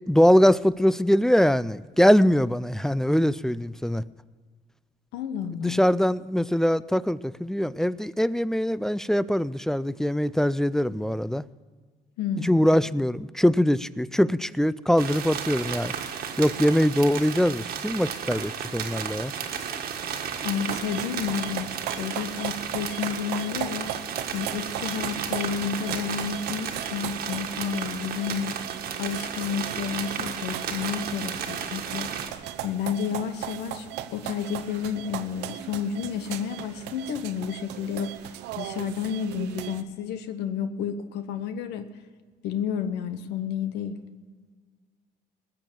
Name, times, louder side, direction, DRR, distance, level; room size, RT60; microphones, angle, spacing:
voice 1, 0.1-4.0 5.6-11.4 12.4-15.9 16.4-19.3, equal, 5° left, 18 dB, 0.3 m, -22 dB
voice 2, 5.1-5.8 12.2-12.7 20.4-23.9 24.3-28.5 29.0-32.1 32.6-41.9 42.4-44.0, left 8 dB, 85° left, 10 dB, 1.0 m, -31 dB
sound 1, 15.0-32.3, right 7 dB, 65° right, 1.6 m, -33 dB
sound 2, 20.7-39.8, right 12 dB, 85° right, 0.8 m, -38 dB
20.0 x 6.9 x 7.6 m, 1.5 s
cardioid pair, 110°, 17 cm